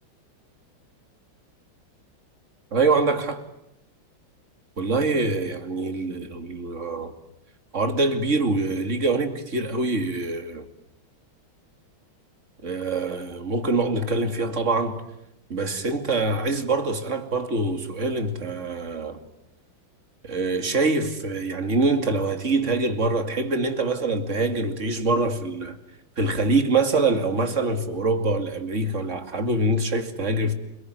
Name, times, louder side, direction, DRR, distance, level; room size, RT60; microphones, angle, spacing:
voice 1, 2.7-3.4 4.8-7.1 7.7-10.6 12.6-15.0 15.5-19.2 20.2-25.8 26.2-30.5, right 3 dB, 35° right, 2.7 m, -24 dB
29.5 x 21.0 x 9.5 m
omnidirectional pair, 2.2 m